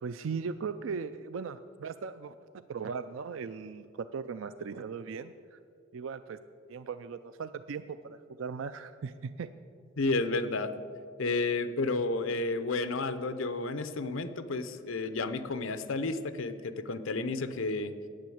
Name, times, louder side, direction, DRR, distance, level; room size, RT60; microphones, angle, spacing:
voice 1, 0.0-2.4 2.7-5.6 5.9-6.4 6.7-9.5, right 5 dB, 65° right, 12 dB, 0.4 m, -38 dB
voice 2, 10.0-10.7 11.2-17.9, left 3 dB, 70° left, 11 dB, 0.7 m, -31 dB
10.5 x 9.2 x 7.8 m, 2.3 s
head